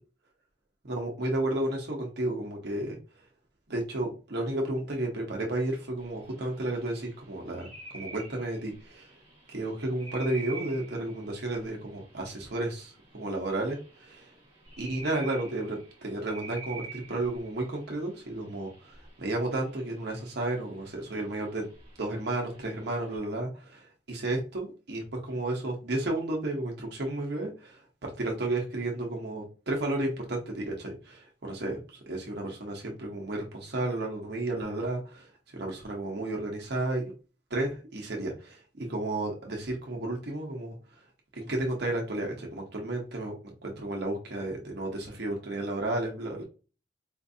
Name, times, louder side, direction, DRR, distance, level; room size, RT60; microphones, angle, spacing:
voice 1, 0.9-3.0 3.7-9.1 9.5-14.3 14.8-21.7 22.0-37.0 37.5-40.8 41.3-43.3 43.6-46.4, right 2 dB, 65° right, 0 dB, 0.9 m, -32 dB
sound 1, 6.0-23.2, right 3 dB, 30° right, 1.5 m, -49 dB
4.4 x 2.6 x 2.6 m, 0.33 s
head